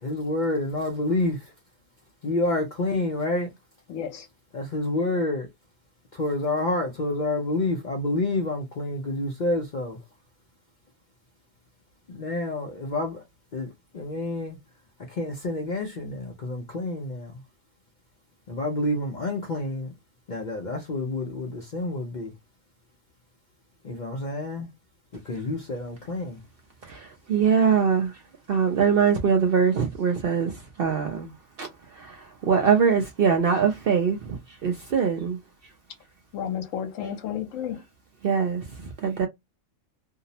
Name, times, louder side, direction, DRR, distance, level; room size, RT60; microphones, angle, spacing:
voice 1, 0.0-1.5 2.2-3.5 4.5-5.5 6.1-10.0 12.1-13.2 13.5-14.6 15.1-17.3 18.5-19.9 20.3-22.3 23.8-24.7 25.2-26.4, left 2 dB, 50° left, 0.5 m, -28 dB
voice 2, 3.9-4.3 36.3-37.8, left 9 dB, 75° left, 1.0 m, -32 dB
voice 3, 26.8-28.2 28.5-31.3 31.6-35.4 38.2-39.3, right 6 dB, 60° right, 0.6 m, -23 dB
2.6 x 2.0 x 2.7 m
omnidirectional pair, 1.4 m